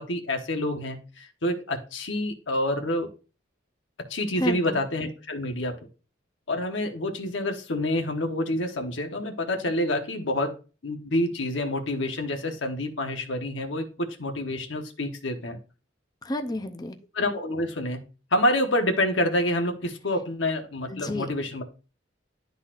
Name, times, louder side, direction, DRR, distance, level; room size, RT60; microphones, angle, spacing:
voice 1, 0.0-3.1 4.1-5.7 6.5-10.5 10.8-15.6 17.1-18.0 18.3-21.6, left 1 dB, 75° left, 4 dB, 1.1 m, -27 dB
voice 2, 4.4-4.8 16.2-17.0 20.9-21.3, left 1 dB, 20° left, 6 dB, 0.6 m, -31 dB
11.5 x 4.0 x 2.5 m, 0.34 s
head